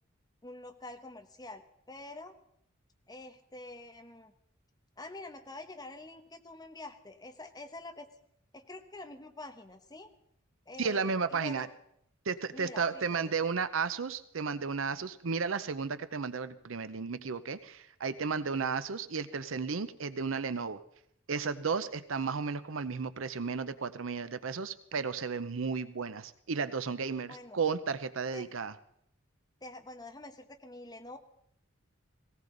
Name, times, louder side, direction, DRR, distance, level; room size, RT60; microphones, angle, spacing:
voice 1, 0.4-2.3 3.1-4.3 5.0-8.1 8.5-10.1 10.7-11.7 12.5-13.3 19.3-19.5 27.3-27.6 28.3-28.6 29.6-31.2, left 2 dB, 20° left, 6 dB, 1.1 m, -46 dB
voice 2, 10.8-11.7 12.3-20.8 21.3-28.7, right 5 dB, 75° right, 13 dB, 0.7 m, -33 dB
18.0 x 17.5 x 4.0 m, 0.72 s
head